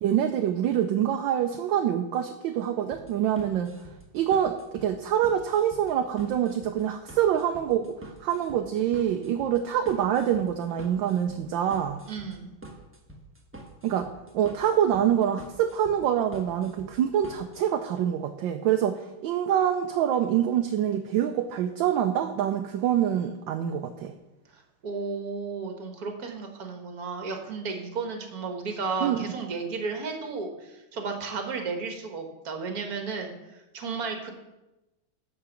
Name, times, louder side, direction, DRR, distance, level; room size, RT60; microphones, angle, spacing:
voice 1, 0.0-3.7 4.1-12.0 13.8-14.1 14.3-24.1 29.0-29.2, right 10 dB, 70° right, 6 dB, 1.2 m, -25 dB
sound 1, 2.9-17.7, right 2 dB, 10° right, 0.7 m, -47 dB
voice 2, 12.1-12.5 24.5-34.3, right 4 dB, 50° right, 4 dB, 1.6 m, -33 dB
10.5 x 4.8 x 7.1 m, 1.0 s
omnidirectional pair, 2.4 m